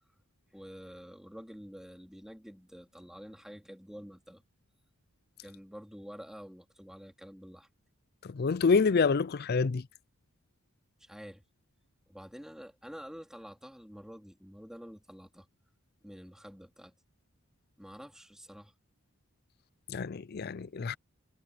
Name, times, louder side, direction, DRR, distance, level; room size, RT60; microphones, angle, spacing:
voice 1, 0.5-4.4 5.4-7.7 11.0-11.4 12.1-15.5 16.0-16.9 17.8-18.7, equal, ahead, 2.8 m, -48 dB
voice 2, 8.2-9.8 19.9-21.0, left 4 dB, 45° left, 0.4 m, -27 dB
head